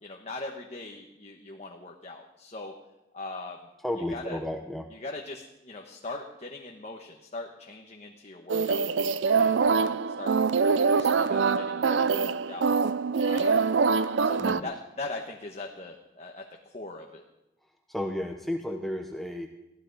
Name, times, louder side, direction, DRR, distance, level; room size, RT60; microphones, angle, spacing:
voice 1, 0.0-2.7 3.1-3.6 4.1-4.4 4.9-9.9 10.2-12.7 13.2-13.7 14.2-17.2, left 2 dB, 35° left, 1 dB, 1.1 m, -40 dB
voice 2, 3.8-4.8 14.4-14.7 17.9-19.5, left 1 dB, ahead, 2 dB, 0.8 m, -33 dB
sound 1, 8.5-14.6, right 5 dB, 80° right, 0.5 m, -24 dB
20.5 x 15.0 x 4.0 m, 0.95 s
head